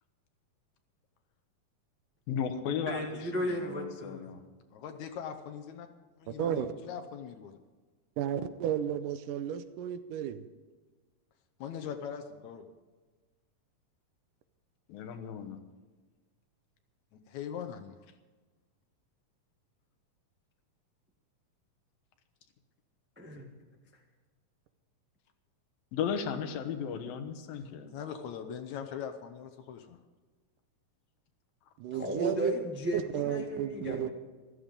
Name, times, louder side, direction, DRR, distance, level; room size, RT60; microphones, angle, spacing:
voice 1, 2.3-4.4 14.9-15.6 25.9-27.9, left 7 dB, 85° left, 7 dB, 3.0 m, -35 dB
voice 2, 2.8-4.3 23.2-23.5 31.9-34.1, equal, 15° right, 1 dB, 0.4 m, -35 dB
voice 3, 4.7-5.9 6.2-7.6 11.6-12.6 17.3-17.9 27.9-30.0, left 8 dB, 70° left, 6 dB, 1.9 m, -41 dB
voice 4, 6.3-6.7 8.2-10.4 31.8-32.5 32.9-34.1, right 10 dB, 80° right, 11 dB, 2.2 m, -33 dB
14.5 x 13.5 x 5.3 m, 1.3 s
omnidirectional pair, 4.0 m